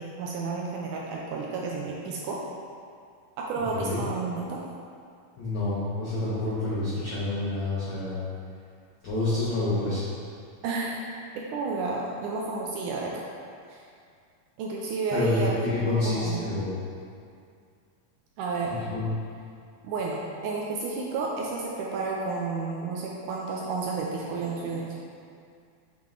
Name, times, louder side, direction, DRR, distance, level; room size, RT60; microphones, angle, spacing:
voice 1, 0.0-2.4 3.4-4.6 10.6-10.9 11.3-13.2 13.7-13.8 14.6-15.5 15.9-16.5 18.4-18.8 19.8-25.0, right 4 dB, 85° right, -3 dB, 1.8 m, -31 dB
voice 2, 5.4-8.2 9.0-10.1 15.1-16.8 18.6-19.1 24.6-24.7, left 2 dB, 75° left, -10 dB, 1.2 m, -28 dB
7.5 x 3.8 x 3.5 m, 2.3 s
omnidirectional pair, 4.1 m